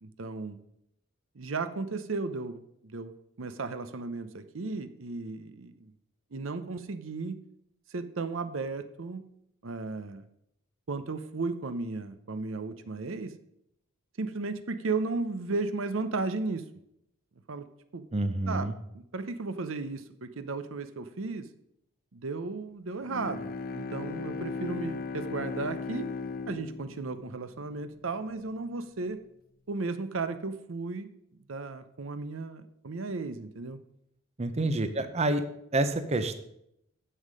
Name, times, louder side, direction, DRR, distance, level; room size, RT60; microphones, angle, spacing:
voice 1, 0.0-0.6 1.4-5.9 6.3-7.4 7.9-9.3 9.6-10.2 10.9-13.3 14.2-16.6 17.5-17.7 17.9-18.0 18.5-18.7 18.9-21.5 22.1-26.1 26.5-29.2 29.7-31.1 31.5-33.8 34.6-34.7, right 3 dB, 70° right, 11 dB, 0.7 m, -35 dB
voice 2, 18.1-18.7 34.4-35.4 35.7-36.4, right 2 dB, 30° right, 9 dB, 0.7 m, -28 dB
Bowed string instrument, 23.0-28.1, left 4 dB, 45° left, 0.5 m, -37 dB
9.9 x 7.5 x 5.1 m, 0.77 s
head